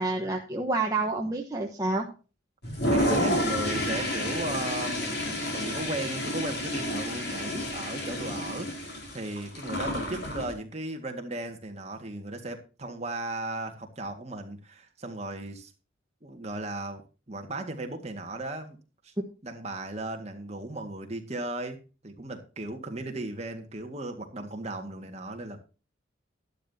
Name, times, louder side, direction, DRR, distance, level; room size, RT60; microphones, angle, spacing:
voice 1, 0.0-2.1, right 2 dB, 15° right, -1 dB, 1.2 m, -28 dB
Toilet flush, 2.6-10.5, left 1 dB, 55° left, 4.8 m, -30 dB
voice 2, 2.7-5.1 5.5-15.7 16.2-18.8 19.0-19.1 19.4-25.6, right 2 dB, 35° right, 4 dB, 1.9 m, -36 dB
12.0 x 12.0 x 2.8 m, 0.34 s
head